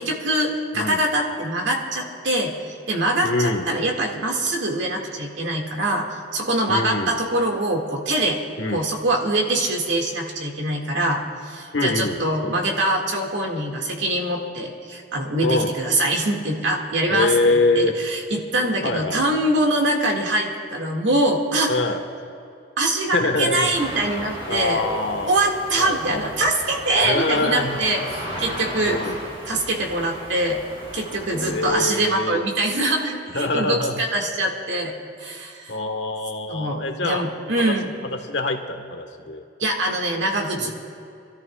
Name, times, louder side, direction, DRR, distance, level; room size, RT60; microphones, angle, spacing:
voice 1, 0.0-2.5 2.9-6.1 6.3-8.4 8.7-17.3 17.8-21.8 22.8-24.8 25.3-29.0 29.5-30.6 30.9-35.7 36.5-37.9 39.6-40.7, right 1 dB, 75° right, 1 dB, 1.9 m, -23 dB
voice 2, 3.2-3.7 6.7-7.1 8.6-8.9 11.7-12.6 15.4-15.7 17.1-17.9 18.8-19.2 21.7-22.0 23.1-23.7 24.5-25.3 25.8-26.3 27.0-27.8 28.8-29.2 31.5-32.4 33.3-34.0 35.7-37.3 37.7-37.8 38.1-39.4 40.6-40.7, left 2 dB, 70° left, 4 dB, 1.3 m, -24 dB
sound 1, 23.7-31.7, equal, 30° right, 3.4 m, -35 dB
27.5 x 13.5 x 2.3 m, 2.6 s
head